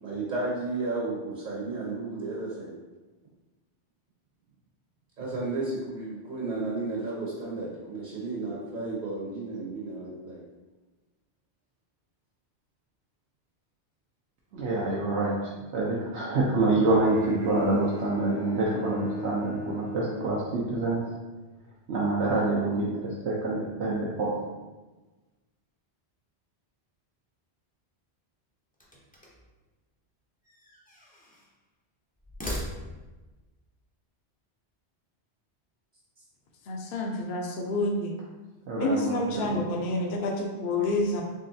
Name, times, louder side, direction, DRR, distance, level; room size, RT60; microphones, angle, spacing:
voice 1, 0.0-2.7 5.2-10.4, right 3 dB, 45° right, -6 dB, 0.9 m, -33 dB
voice 2, 14.5-15.3 15.7-21.0 21.9-24.3 38.7-39.6, right 2 dB, 80° right, -5 dB, 0.9 m, -26 dB
Bowed string instrument, 16.9-21.2, left 1 dB, 65° right, 1.2 m, -38 dB
sound 1, 28.7-29.5 30.4-31.5 32.2-33.2, equal, 15° left, 0.4 m, -39 dB
voice 3, 36.7-38.1 38.8-41.2, left 2 dB, 65° left, 1 dB, 0.7 m, -28 dB
3.8 x 3.1 x 2.7 m, 1.2 s
omnidirectional pair, 1.1 m